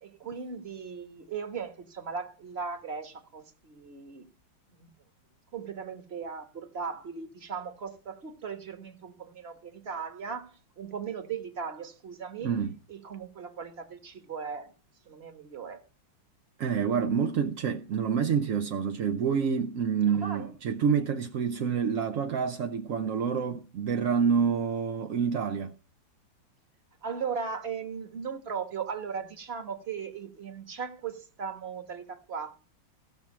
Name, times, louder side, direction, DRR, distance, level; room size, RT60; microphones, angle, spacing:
voice 1, 0.0-4.3 4.8-4.9 5.5-12.6 12.9-14.7 15.1-15.8 20.1-20.5 27.0-32.6, right 6 dB, 35° right, 1.5 m, -38 dB
voice 2, 12.4-12.7 16.6-25.7, right 6 dB, 60° right, 0.8 m, -27 dB
15.5 x 6.1 x 7.3 m
omnidirectional pair, 2.1 m